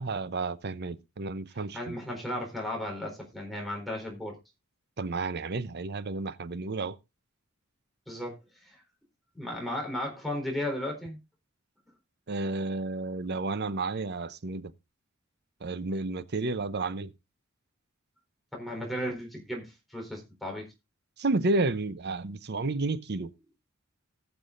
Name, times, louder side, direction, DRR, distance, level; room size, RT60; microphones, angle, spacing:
voice 1, 0.0-1.9 5.0-7.0 12.3-14.7 15.6-17.1 21.2-23.3, right 3 dB, 55° right, 0.7 m, -31 dB
voice 2, 1.5-4.4 8.1-8.4 8.6-8.8 9.3-11.2 18.5-20.7, left 1 dB, ahead, 4.0 m, -35 dB
19.0 x 7.0 x 2.6 m
head